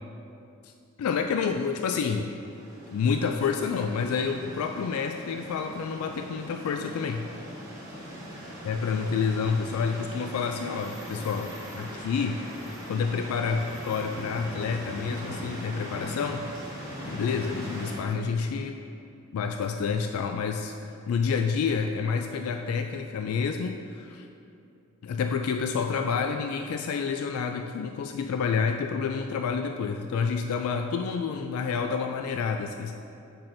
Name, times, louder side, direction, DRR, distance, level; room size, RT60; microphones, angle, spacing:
voice 1, 1.0-2.3 2.9-7.3 8.6-12.4 12.9-16.5 17.0-18.8 19.3-24.3 25.0-32.9, left 5 dB, 85° left, 5 dB, 0.3 m, -29 dB
sound 1, 2.2-18.0, equal, 15° right, 1.5 m, -40 dB
8.6 x 5.8 x 2.6 m, 2.6 s
head